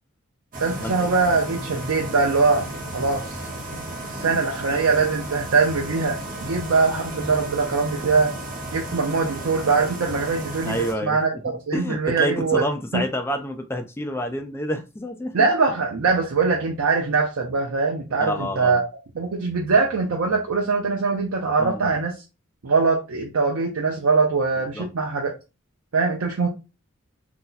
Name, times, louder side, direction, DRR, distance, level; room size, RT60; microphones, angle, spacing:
sound 1, 0.5-10.9, right 1 dB, 40° right, 0.9 m, -34 dB
voice 1, 0.6-2.7 2.9-3.4 4.1-8.3 8.7-10.8 11.0-11.3 11.7-12.6 12.9-13.0 15.3-18.8 19.2-22.1 22.6-25.3 25.9-26.5, right 4 dB, 85° right, 0.6 m, -22 dB
voice 2, 4.2-4.5 10.7-15.5 18.2-18.8 21.6-21.9 24.7-24.9, equal, 10° left, 0.4 m, -29 dB
2.8 x 2.2 x 3.8 m
head